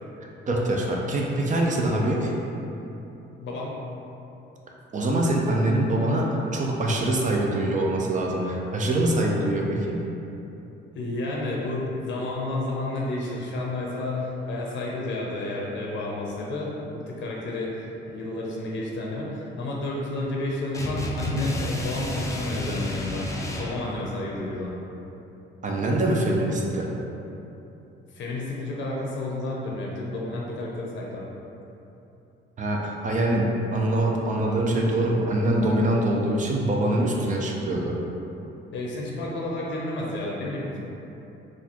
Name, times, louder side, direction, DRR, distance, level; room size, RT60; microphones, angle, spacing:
voice 1, 0.5-2.3 4.9-10.0 25.6-26.9 32.6-38.0, right 1 dB, 40° right, -1 dB, 0.6 m, -24 dB
voice 2, 3.3-3.8 10.9-23.3 23.5-24.7 28.1-31.2 38.7-40.8, left 2 dB, 70° left, -3 dB, 0.6 m, -31 dB
sound 1, 20.7-23.8, left 1 dB, 15° left, 0.4 m, -30 dB
4.0 x 2.5 x 2.9 m, 2.9 s
cardioid pair, 90°, 20 cm